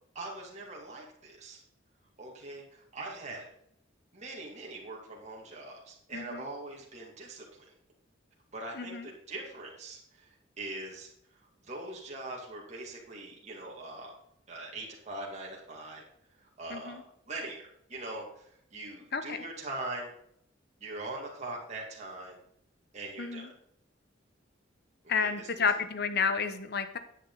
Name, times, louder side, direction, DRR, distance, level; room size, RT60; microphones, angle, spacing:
voice 1, 0.1-1.6 2.2-3.5 4.1-7.7 8.5-11.1 11.6-14.2 14.5-16.0 16.4-20.1 20.8-22.4 22.9-23.5 25.2-25.6, right 2 dB, 40° right, -3 dB, 2.2 m, -42 dB
voice 2, 6.1-6.4 8.7-9.1 16.7-17.0 19.1-19.5 23.2-23.5 25.1-27.0, left 5 dB, 60° left, 10 dB, 1.0 m, -31 dB
9.9 x 8.8 x 4.0 m, 0.71 s
head